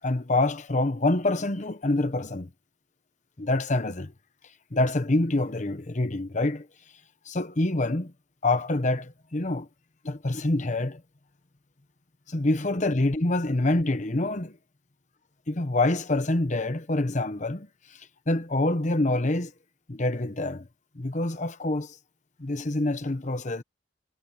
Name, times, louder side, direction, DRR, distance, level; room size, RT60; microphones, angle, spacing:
voice 1, 0.0-2.5 3.4-4.1 4.7-6.7 7.3-8.1 8.4-9.7 10.0-11.0 12.3-14.6 15.5-19.5 19.9-20.7 20.9-22.0 22.4-23.6, left 2 dB, 45° left, 1.1 m, -26 dB
head